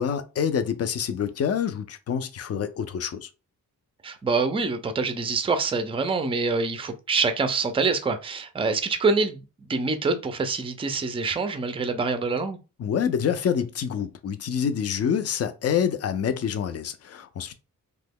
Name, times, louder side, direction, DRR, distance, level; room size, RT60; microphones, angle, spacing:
voice 1, 0.0-3.3 12.8-17.5, left 7 dB, 45° left, 0.4 m, -27 dB
voice 2, 4.0-12.6, right 4 dB, 15° right, 0.4 m, -25 dB
3.0 x 2.2 x 3.4 m
wide cardioid pair, 140°, 36 cm